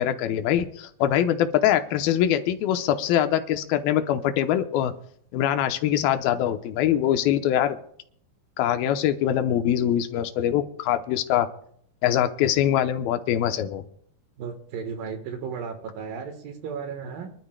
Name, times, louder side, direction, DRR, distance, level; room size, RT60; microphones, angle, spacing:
voice 1, 0.0-4.9 5.3-7.8 8.6-11.5 12.0-13.8, left 11 dB, 85° left, 8 dB, 2.7 m, -23 dB
voice 2, 14.4-17.3, right 6 dB, 75° right, 5 dB, 3.0 m, -34 dB
25.5 x 12.0 x 2.2 m, 0.64 s
omnidirectional pair, 4.2 m